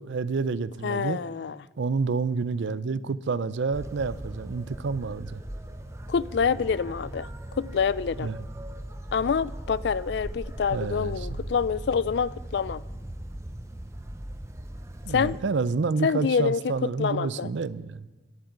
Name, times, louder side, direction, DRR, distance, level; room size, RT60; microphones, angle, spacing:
voice 1, 0.0-1.2 1.8-5.4 8.2-8.4 10.7-11.4 15.0-18.1, right 4 dB, 80° right, 0.5 m, -29 dB
voice 2, 0.8-1.6 6.1-7.3 7.5-8.3 9.1-12.8 15.1-15.3 16.0-16.7 17.0-17.5, left 6 dB, 65° left, 0.4 m, -26 dB
sound 1, 3.7-15.4, right 1 dB, 15° right, 0.7 m, -39 dB
10.5 x 8.9 x 8.8 m
head